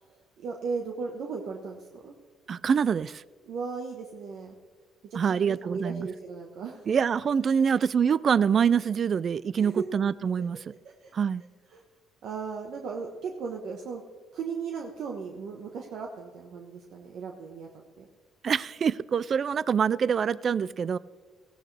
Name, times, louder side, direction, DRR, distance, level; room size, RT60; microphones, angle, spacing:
voice 1, 0.1-2.2 3.5-4.6 5.1-6.9 7.6-7.7 9.6-9.8 10.8-11.1 11.7-11.8 12.2-14.0 14.3-17.7 18.0-18.1, right 5 dB, 65° right, 2 dB, 1.2 m, -36 dB
voice 2, 2.5-3.2 5.1-6.1 6.9-10.7 11.1-11.4 18.4-21.0, right 7 dB, 40° right, 20 dB, 0.3 m, -25 dB
17.0 x 16.5 x 3.4 m, 1.5 s
cardioid pair, 120°, 0 cm